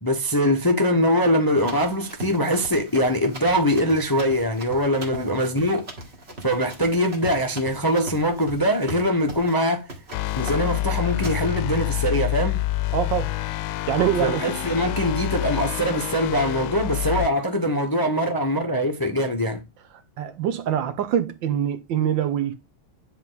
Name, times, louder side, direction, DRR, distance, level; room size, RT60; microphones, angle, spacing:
voice 1, 0.0-5.9 6.4-9.9 10.4-12.7 14.2-19.6, equal, 30° left, 0.4 m, -22 dB
Run, 1.6-9.6 9.9-10.2 10.5-10.8 11.2-11.4, right 1 dB, 30° right, 2.1 m, -39 dB
sound 1, 10.1-17.3, left 16 dB, 75° left, 1.3 m, -27 dB
voice 2, 12.9-13.3 13.9-14.5 20.2-22.5, right 9 dB, 65° right, 1.5 m, -24 dB
9.9 x 4.5 x 3.9 m
omnidirectional pair, 2.3 m